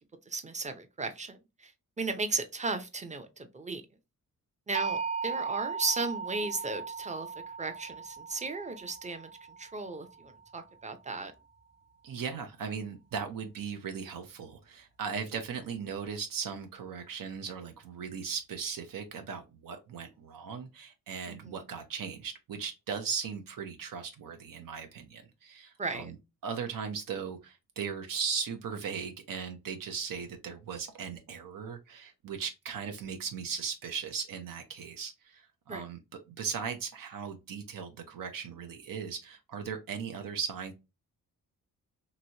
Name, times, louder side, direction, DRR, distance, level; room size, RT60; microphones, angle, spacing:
voice 1, 0.3-1.7 2.0-3.8 4.7-7.3 7.6-9.3 9.6-11.3 21.3-21.6 25.8-26.1 35.7-35.8, right 3 dB, 20° right, 0.6 m, -35 dB
sound 1, 4.7-10.7, right 5 dB, 45° right, 1.4 m, -37 dB
voice 2, 12.0-26.1 26.4-36.0 36.3-40.7, right 6 dB, 70° right, 0.7 m, -38 dB
3.0 x 2.7 x 2.8 m
cardioid pair, 80°, 34 cm